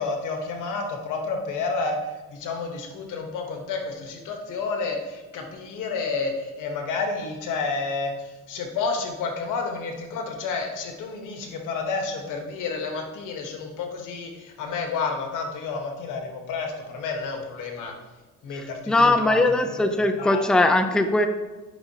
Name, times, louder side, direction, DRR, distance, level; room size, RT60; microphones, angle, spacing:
voice 1, 0.0-2.0 2.3-17.9 18.4-19.3 19.7-19.8 20.1-20.7, left 4 dB, 90° left, 3 dB, 1.3 m, -30 dB
voice 2, 18.5-21.3, left 2 dB, 5° left, 7 dB, 0.5 m, -20 dB
9.7 x 5.5 x 2.8 m, 1.2 s
cardioid pair, 90°, 30 cm